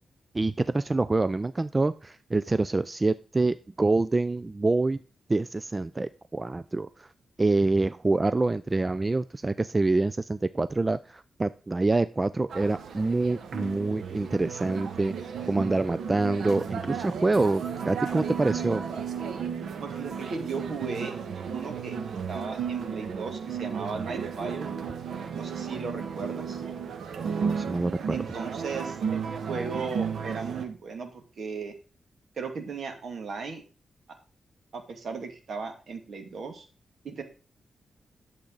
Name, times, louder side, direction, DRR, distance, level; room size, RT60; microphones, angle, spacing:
voice 1, 0.3-5.0 5.3-7.1 7.4-15.1 15.5-18.8 27.4-28.2, right 2 dB, 25° right, 14 dB, 0.4 m, -26 dB
sound 1, 12.5-30.7, right 6 dB, 85° right, 1.3 m, -34 dB
voice 2, 19.8-21.1 21.5-22.0 22.3-24.7 25.3-26.6 28.1-31.7 32.4-33.6 34.7-36.7 37.0-37.2, right 4 dB, 65° right, 5 dB, 2.2 m, -36 dB
11.5 x 7.3 x 3.9 m, 0.36 s
wide cardioid pair, 110°, 0 cm